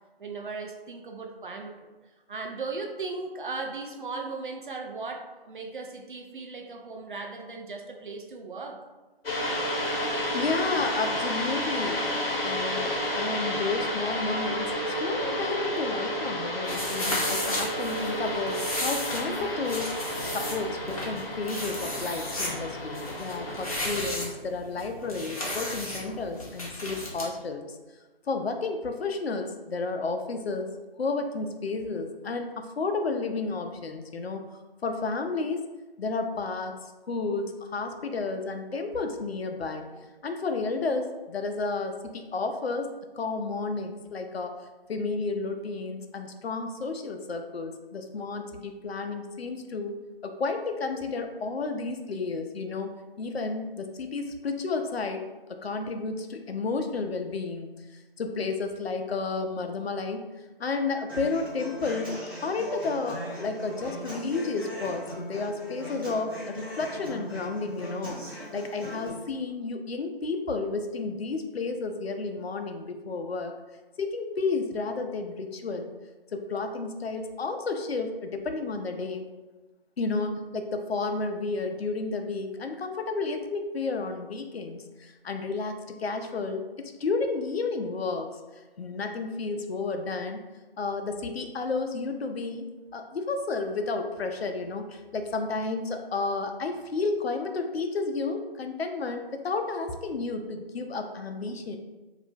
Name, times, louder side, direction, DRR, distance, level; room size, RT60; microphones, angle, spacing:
voice 1, 0.2-1.9 2.3-8.8, right 3 dB, 55° right, 3 dB, 0.4 m, -37 dB
sound 1, 9.2-23.9, equal, 65° left, 0.8 m, -31 dB
voice 2, 10.3-12.0 12.4-14.7 15.0-19.9 20.3-27.7 28.3-30.7 31.0-34.4 34.8-35.6 36.0-39.9 40.2-42.9 43.1-44.5 44.9-52.9 53.2-57.7 58.2-60.2 60.6-73.5 74.0-75.9 76.3-79.3 80.0-88.3 88.8-90.4 90.8-92.6 92.9-101.8, left 3 dB, 85° left, 5 dB, 0.5 m, -31 dB
sound 2, 16.6-27.3, left 1 dB, 35° left, 0.6 m, -34 dB
Human voice / Acoustic guitar, 61.1-69.1, right 1 dB, 25° right, 0.7 m, -39 dB
2.4 x 2.1 x 3.8 m, 1.2 s
figure-of-eight pair, 160°, 30 cm